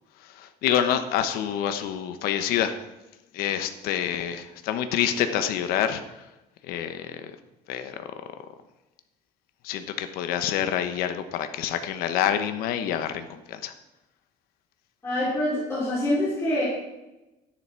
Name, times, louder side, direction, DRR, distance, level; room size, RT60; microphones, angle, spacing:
voice 1, 0.2-2.8 3.3-6.2 6.6-7.4 7.7-8.1 9.6-13.7, left 10 dB, 75° left, 9 dB, 1.1 m, -27 dB
voice 2, 15.0-16.6, left 1 dB, 15° left, -9 dB, 4.2 m, -25 dB
12.0 x 10.5 x 4.6 m, 1.0 s
cardioid pair, 145°, 16 cm